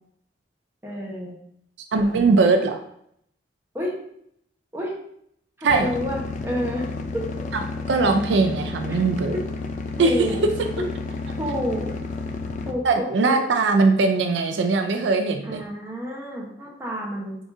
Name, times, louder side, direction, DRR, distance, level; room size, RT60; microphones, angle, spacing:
voice 1, 0.8-1.3 3.7-3.9 4.7-4.9 5.6-6.9 7.1-7.5 8.8-9.0 9.3-9.4 10.0-10.4 10.8-10.9 11.4-11.9 12.7-13.5 15.4-17.4, equal, 15° right, -4 dB, 1.0 m, -29 dB
voice 2, 1.9-2.8 5.6-5.9 7.5-7.6 7.9-9.3 10.0-10.1 12.8-15.6, right 3 dB, 80° right, 6 dB, 0.4 m, -20 dB
sound 1, 5.7-12.7, left 3 dB, 40° left, 0.4 m, -31 dB
4.9 x 3.6 x 2.6 m, 0.71 s
head